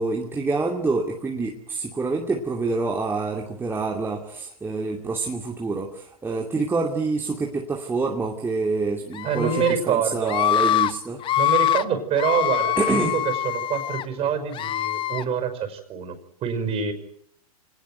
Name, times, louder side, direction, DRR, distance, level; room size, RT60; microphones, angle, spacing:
voice 1, 0.0-11.2 12.8-13.2, right 3 dB, 10° right, 0 dB, 2.5 m, -27 dB
Screaming, 9.1-9.7 10.3-10.9 11.2-11.8 12.2-14.0 14.5-15.2, left 11 dB, 25° left, 1.0 m, -24 dB
voice 2, 9.2-10.4 11.4-16.9, right 7 dB, 30° right, 9 dB, 5.5 m, -26 dB
26.0 x 19.5 x 9.3 m, 0.70 s
hypercardioid pair, 105°, 19 cm